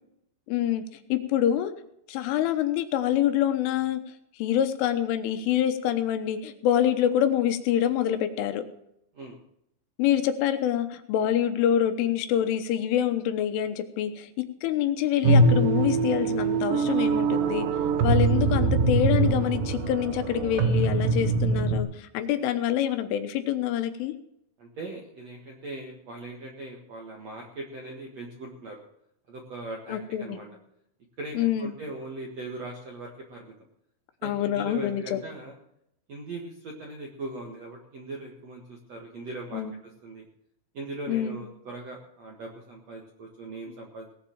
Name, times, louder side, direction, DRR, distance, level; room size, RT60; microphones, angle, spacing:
voice 1, 0.5-1.7 2.1-4.0 4.4-8.6 10.0-17.7 18.0-24.2 29.9-30.4 31.4-31.7 34.2-35.2 39.5-39.7 41.1-41.4, left 10 dB, 80° left, 8 dB, 3.5 m, -26 dB
sound 1, 15.2-21.8, right 3 dB, 80° right, 1.9 m, -23 dB
voice 2, 24.6-28.8 29.3-30.5 31.2-33.5 34.2-35.5 36.1-40.3 40.7-44.1, right 2 dB, 60° right, 0 dB, 1.8 m, -40 dB
18.5 x 7.3 x 7.2 m, 0.77 s
omnidirectional pair, 5.7 m